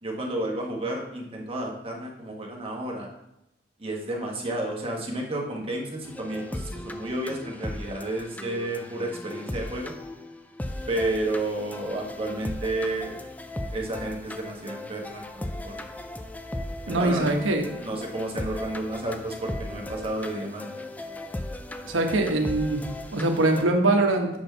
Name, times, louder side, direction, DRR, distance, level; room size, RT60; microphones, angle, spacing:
voice 1, 0.0-3.1 3.8-9.9 10.9-13.2 13.7-16.0 16.9-17.3 17.8-20.7, right 1 dB, 30° right, 0 dB, 1.2 m, -31 dB
sound 1, 6.0-23.6, left 1 dB, 10° left, 0.3 m, -37 dB
voice 2, 16.9-17.6 21.8-22.8 23.1-24.3, right 2 dB, 90° right, 3 dB, 1.1 m, -22 dB
6.9 x 4.3 x 5.6 m, 0.86 s
head